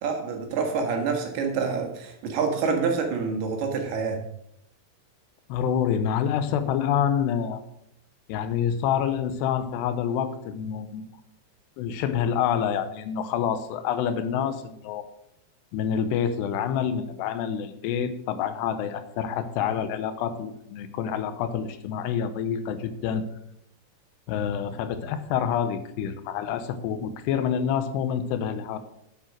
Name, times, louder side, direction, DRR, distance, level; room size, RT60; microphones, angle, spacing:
voice 1, 0.0-4.2, right 5 dB, 70° right, 3 dB, 3.4 m, -27 dB
voice 2, 5.5-7.6 8.3-11.1 11.8-15.0 15.7-23.2 24.3-28.8, left 8 dB, 85° left, 11 dB, 3.0 m, -27 dB
9.4 x 7.8 x 6.2 m, 0.77 s
omnidirectional pair, 4.8 m